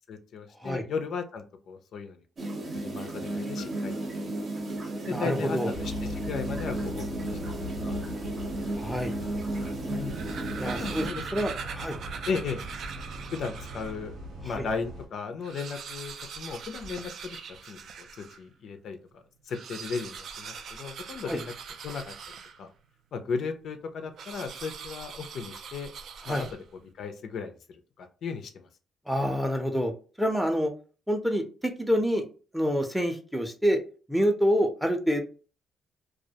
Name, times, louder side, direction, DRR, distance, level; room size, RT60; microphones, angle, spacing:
voice 1, 0.1-4.2 5.1-7.2 7.8-7.9 9.9-10.2 10.8-11.5 12.3-12.6 13.3-14.1 14.4-17.4 17.7-21.5 21.8-22.1 22.6-22.7 23.1-25.9 26.3-26.5 27.0-27.5 28.0-28.7, left 5 dB, 65° left, 7 dB, 0.4 m, -36 dB
sound 1, 2.4-11.1, right 2 dB, 45° right, 0.7 m, -34 dB
voice 2, 5.1-5.7 8.8-9.1 10.6-11.1 11.3-12.0 14.5-14.6 21.3-21.4 26.3-26.4 29.1-29.9 30.2-30.7 31.1-32.2 32.5-33.8 34.1-35.2, equal, ahead, 5 dB, 0.5 m, -27 dB
sound 2, 5.7-15.1, left 1 dB, 90° right, 1.1 m, -40 dB
sound 3, 10.0-14.1 14.6-14.7 14.9-15.0 15.3-18.5 19.4-22.9 24.2-26.9, right 6 dB, 65° right, 0.3 m, -41 dB
2.2 x 2.1 x 2.7 m, 0.37 s
cardioid pair, 90°, 0 cm